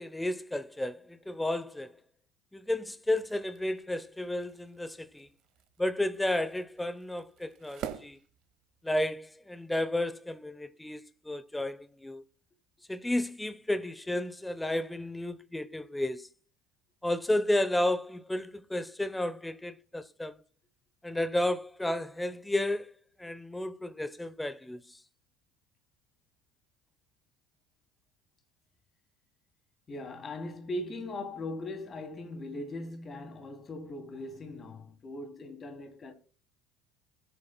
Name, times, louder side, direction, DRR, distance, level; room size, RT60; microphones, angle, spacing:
voice 1, 0.0-2.0 2.5-5.3 5.8-8.2 8.8-12.2 12.9-16.3 17.0-20.3 21.0-22.9 23.2-25.0, left 1 dB, 10° left, 0.7 m, -32 dB
sound 1, 3.0-9.0, right 10 dB, 55° right, 1.7 m, -48 dB
voice 2, 29.9-36.1, left 2 dB, 35° left, 2.7 m, -39 dB
20.5 x 8.6 x 2.2 m
hypercardioid pair, 70°, 0 cm